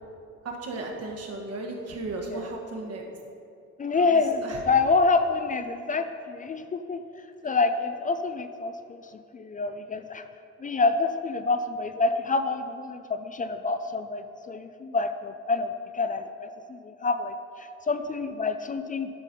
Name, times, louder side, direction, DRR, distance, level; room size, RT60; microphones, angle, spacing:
voice 1, 0.4-3.1 3.9-4.6, right 2 dB, 55° right, 0 dB, 1.4 m, -35 dB
voice 2, 3.8-10.3 10.6-19.1, left 3 dB, 25° left, 9 dB, 0.4 m, -27 dB
11.0 x 4.1 x 5.3 m, 2.5 s
cardioid pair, 90°, 30 cm